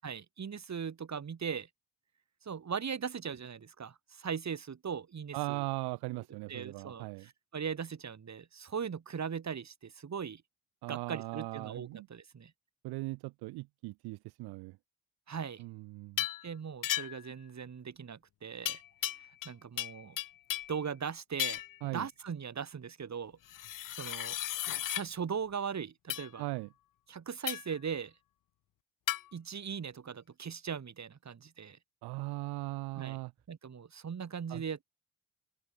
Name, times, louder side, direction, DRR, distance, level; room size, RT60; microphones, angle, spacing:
voice 1, 0.0-1.7 2.4-5.6 6.1-10.4 10.9-12.5 15.3-15.6 16.4-20.2 20.7-23.7 24.0-24.4 24.8-26.4 27.1-28.1 29.3-31.8 32.9-33.2 33.5-34.9, right 7 dB, 45° right, 6.4 m, -39 dB
voice 2, 5.3-7.3 10.8-12.1 12.8-14.8 15.6-16.2 21.8-22.1 26.4-26.7 32.0-33.3 34.5-34.6, right 21 dB, 70° right, 1.9 m, -39 dB
sound 1, 16.2-16.4 16.8-17.3 18.6-19.5 19.8-20.8 21.4-21.8 23.5-25.0 26.1-26.3 27.5-27.8 29.1-29.2, left 13 dB, 55° left, 1.1 m, -35 dB
open air
hypercardioid pair, 50°, 39 cm